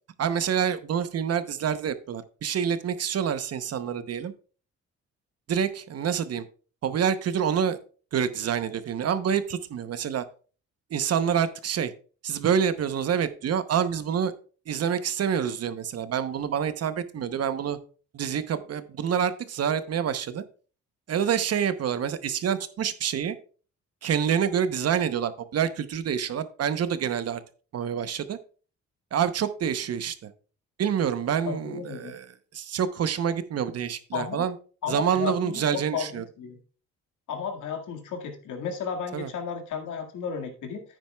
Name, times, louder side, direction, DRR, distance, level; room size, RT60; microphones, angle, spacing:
voice 1, 0.2-4.3 5.5-6.5 6.8-7.8 8.1-10.2 10.9-11.9 12.2-14.3 14.7-17.8 18.1-20.4 21.1-23.4 24.0-27.4 27.7-28.4 29.1-30.3 30.8-32.3 32.5-34.5 34.9-36.2 39.1-39.3, right 8 dB, 55° right, 12 dB, 0.8 m, -27 dB
voice 2, 31.5-32.1 34.1-34.5 34.8-36.6 37.3-40.8, left 7 dB, 80° left, 4 dB, 1.9 m, -33 dB
10.0 x 9.1 x 2.3 m, 0.39 s
cardioid pair, 90°, 30 cm